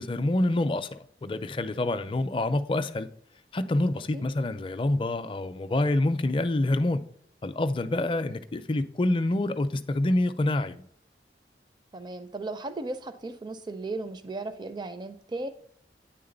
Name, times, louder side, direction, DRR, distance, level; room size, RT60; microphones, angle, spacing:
voice 1, 0.0-3.1 3.5-7.0 7.4-10.8, left 2 dB, 30° left, 0.4 m, -27 dB
voice 2, 11.9-15.5, right 2 dB, 25° right, 0.4 m, -36 dB
9.5 x 3.6 x 3.9 m
head